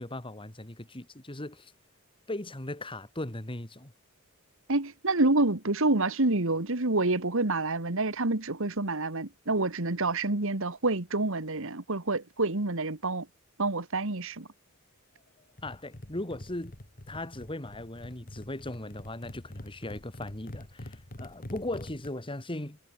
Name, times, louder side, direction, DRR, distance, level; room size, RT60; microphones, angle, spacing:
voice 1, 0.0-1.7 2.3-3.9 15.6-16.8 17.1-22.8, left 1 dB, 25° left, 2.3 m, -38 dB
voice 2, 4.7-13.3 13.6-14.5, right 2 dB, 65° right, 2.0 m, -28 dB
sound 1, 15.6-22.1, left 1 dB, 40° left, 2.1 m, -45 dB
head